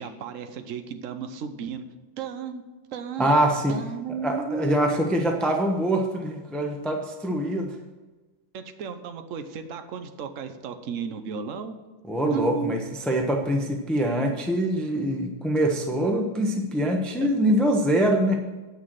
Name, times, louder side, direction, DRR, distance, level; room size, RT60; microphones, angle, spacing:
voice 1, 0.0-1.8 2.2-2.6 2.9-3.3 3.7-4.9 8.5-11.8 12.3-12.7 17.2-17.3, right 6 dB, 55° right, 8 dB, 0.9 m, -34 dB
voice 2, 3.2-3.8 4.2-7.8 12.1-18.4, right 1 dB, ahead, 2 dB, 0.4 m, -24 dB
9.6 x 6.4 x 7.6 m, 1.2 s
omnidirectional pair, 2.3 m